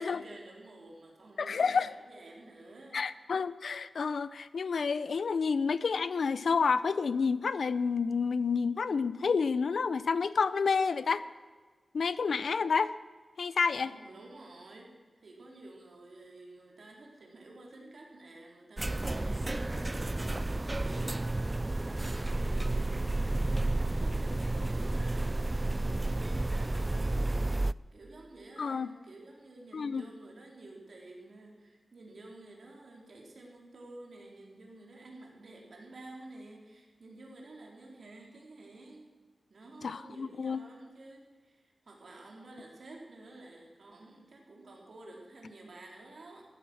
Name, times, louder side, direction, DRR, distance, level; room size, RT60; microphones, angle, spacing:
voice 1, 0.0-3.0 13.9-23.4 23.8-27.3 27.9-39.1 39.5-46.5, right 2 dB, 65° right, -1 dB, 4.0 m, -51 dB
voice 2, 1.4-1.9 2.9-11.2 11.9-12.9 13.4-13.9 28.6-28.9 29.7-30.0 39.8-40.6, left 5 dB, 75° left, 16 dB, 0.6 m, -29 dB
sound 1, 18.8-27.7, right 2 dB, 25° right, 0.3 m, -31 dB
14.5 x 13.0 x 6.3 m, 1.4 s
cardioid pair, 60°, 0 cm